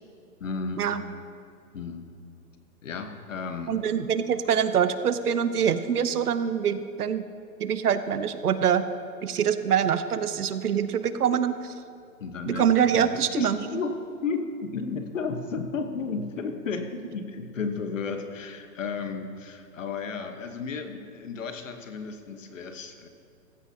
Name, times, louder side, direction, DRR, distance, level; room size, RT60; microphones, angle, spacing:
voice 1, 0.4-0.9 1.7-2.1 2.8-3.8 12.2-13.9 14.2-23.1, left 4 dB, 50° left, 6 dB, 1.3 m, -33 dB
voice 2, 3.7-7.3 7.6-8.8 9.2-11.7 12.5-13.6, right 8 dB, 65° right, 12 dB, 0.9 m, -24 dB
15.5 x 14.5 x 2.8 m, 2.6 s
hypercardioid pair, 170°, 48 cm